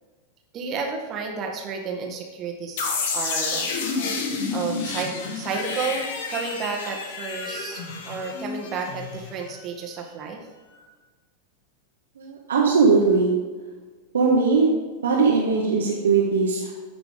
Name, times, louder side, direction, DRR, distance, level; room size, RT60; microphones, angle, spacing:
voice 1, 0.5-3.7 4.5-10.4, right 5 dB, 30° right, 2 dB, 1.8 m, -31 dB
sound 1, 2.8-9.6, left 4 dB, 55° left, 1.6 m, -30 dB
voice 2, 12.2-13.3 14.1-14.7 15.0-16.7, right 4 dB, 65° right, -4 dB, 1.5 m, -19 dB
14.5 x 5.9 x 3.7 m, 1.4 s
figure-of-eight pair, 90°, 0 cm